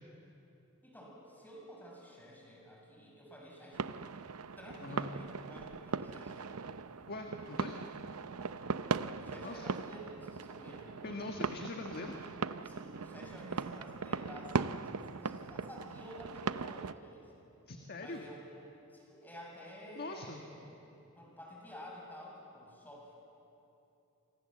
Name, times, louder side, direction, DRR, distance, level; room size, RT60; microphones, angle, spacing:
voice 1, 0.8-4.0 4.6-6.7 7.5-7.6 8.3-11.0 12.6-17.3 18.0-20.7 21.2-23.1, equal, 10° left, -2 dB, 6.6 m, -51 dB
sound 1, 3.7-16.9, right 5 dB, 90° right, 0.7 m, -39 dB
voice 2, 4.8-5.1 7.1-7.7 9.4-9.7 11.0-12.2 17.7-18.3 19.9-20.4, left 2 dB, 45° left, 3 dB, 1.5 m, -42 dB
28.0 x 24.5 x 7.6 m, 2.8 s
head